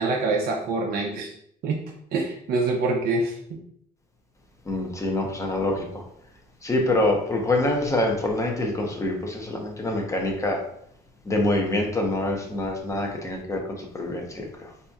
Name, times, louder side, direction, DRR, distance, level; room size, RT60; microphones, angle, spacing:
voice 1, 0.0-1.3 1.6-1.8 2.1-3.4, right 3 dB, 65° right, 0 dB, 0.6 m, -25 dB
voice 2, 4.7-6.0 6.6-10.6 11.2-14.7, left 1 dB, 20° left, 1 dB, 0.7 m, -26 dB
4.1 x 2.8 x 2.3 m, 0.70 s
cardioid pair, 110°, 17 cm